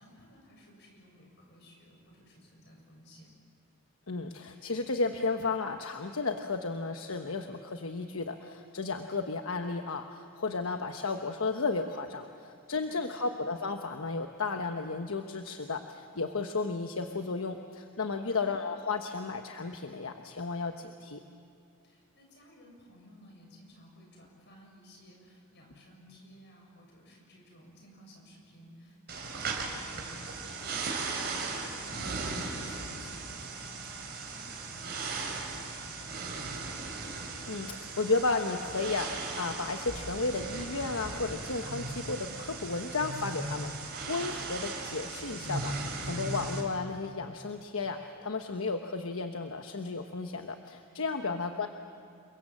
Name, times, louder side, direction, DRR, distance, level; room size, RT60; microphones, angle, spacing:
voice 1, 0.0-3.3 12.9-13.4 18.2-18.5 21.8-36.4 51.2-51.7, equal, 50° left, 0 dB, 7.3 m, -56 dB
voice 2, 4.1-21.2 37.5-51.7, left 3 dB, 75° left, 6 dB, 1.1 m, -33 dB
sound 1, 29.1-46.6, right 3 dB, 50° right, 4.0 m, -37 dB
29.0 x 23.5 x 7.5 m, 2.6 s
head